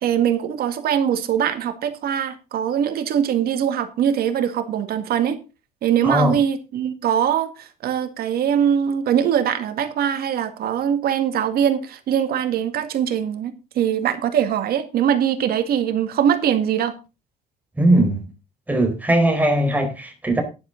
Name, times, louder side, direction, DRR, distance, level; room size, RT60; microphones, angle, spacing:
voice 1, 0.0-5.4 5.8-16.9, right 9 dB, 65° right, 2.1 m, -22 dB
voice 2, 6.0-6.4 17.8-18.2 18.7-20.4, right 1 dB, 10° right, 4.2 m, -19 dB
11.0 x 10.5 x 3.9 m
cardioid pair, 110°, 17 cm